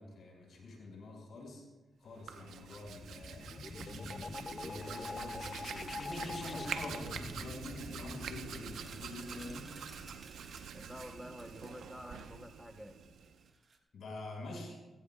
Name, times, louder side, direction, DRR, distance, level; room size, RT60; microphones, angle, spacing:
voice 1, 0.0-1.6 2.0-9.8 13.9-14.8, left 2 dB, 70° left, -1 dB, 5.2 m, -46 dB
Hands, 2.1-13.5, right 7 dB, 90° right, 0.8 m, -46 dB
sound 1, 2.8-10.4, left 4 dB, 40° left, 0.3 m, -45 dB
sound 2, 8.6-13.8, right 4 dB, 50° right, 1.4 m, -58 dB
voice 2, 10.7-13.0, equal, 5° left, 5 dB, 0.8 m, -49 dB
16.5 x 16.5 x 2.3 m, 1.2 s
cardioid pair, 80°, 0 cm